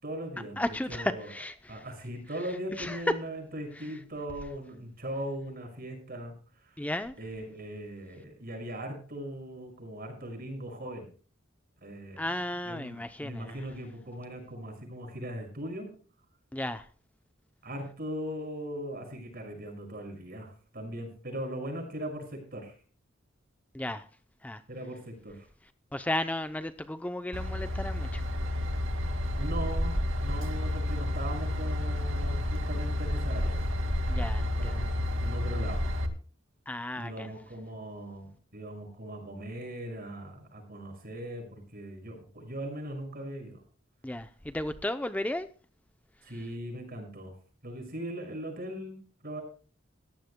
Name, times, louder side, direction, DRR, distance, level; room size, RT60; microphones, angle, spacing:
voice 1, 0.0-1.3 1.7-6.3 6.6-6.8 7.2-11.1 11.8-12.3 12.6-15.9 17.6-22.7 24.7-25.5 29.4-29.9 30.2-33.7 34.6-35.8 37.0-43.6 46.2-47.3 47.6-49.0 49.2-49.4, right 1 dB, 50° right, 6.1 m, -39 dB
voice 2, 0.6-1.8 2.8-3.0 6.8-7.1 12.2-13.6 16.5-16.8 23.7-24.1 24.4-24.6 25.9-28.2 34.1-34.8 36.7-37.3 44.0-45.5, left 1 dB, 10° left, 0.5 m, -34 dB
Train / Engine, 27.3-36.1, left 1 dB, 80° right, 2.2 m, -30 dB
20.0 x 14.5 x 2.2 m
head